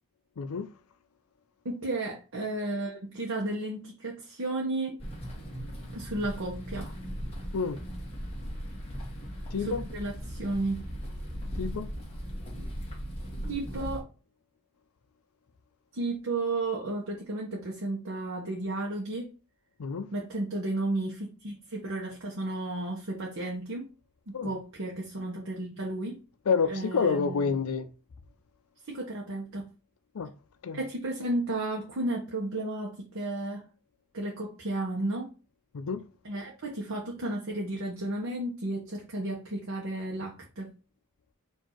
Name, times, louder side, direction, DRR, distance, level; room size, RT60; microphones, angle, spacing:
voice 1, 0.4-0.7 7.5-7.8 9.5-9.8 11.6-11.9 19.8-20.1 24.3-24.5 26.5-27.9 30.1-30.3 30.6-30.8 35.7-36.0, left 5 dB, 80° left, 0.5 m, -28 dB
voice 2, 1.6-5.0 5.9-6.9 9.5-10.9 12.5-12.7 13.4-14.0 15.9-19.3 20.1-23.9 24.3-26.2 26.7-27.5 28.9-29.7 30.7-33.7 34.1-35.3 36.2-40.7, right 2 dB, 65° right, 0.9 m, -33 dB
sound 1, 5.0-14.0, equal, 25° left, 1.4 m, -38 dB
4.6 x 2.7 x 4.4 m
head